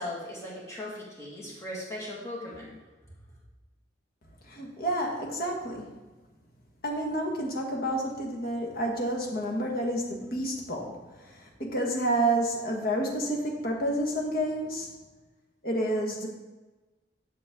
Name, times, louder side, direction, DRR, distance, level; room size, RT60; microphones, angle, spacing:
voice 1, 0.0-2.8, left 1 dB, 15° left, -5 dB, 1.8 m, -38 dB
voice 2, 4.4-5.9 6.8-14.9 15.6-16.3, right 1 dB, 55° left, 0 dB, 1.6 m, -29 dB
8.2 x 6.3 x 3.7 m, 1.2 s
head